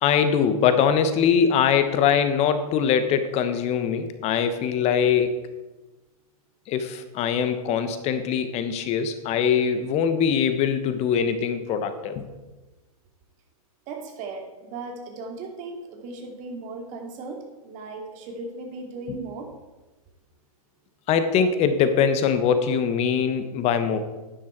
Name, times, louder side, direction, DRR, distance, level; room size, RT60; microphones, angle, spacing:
voice 1, 0.0-5.3 6.7-12.2 21.1-24.0, left 7 dB, 35° left, 10 dB, 1.3 m, -22 dB
voice 2, 13.9-19.5, right 3 dB, 40° right, 2 dB, 2.7 m, -37 dB
11.5 x 9.8 x 4.6 m, 1.1 s
hypercardioid pair, 115°, 19 cm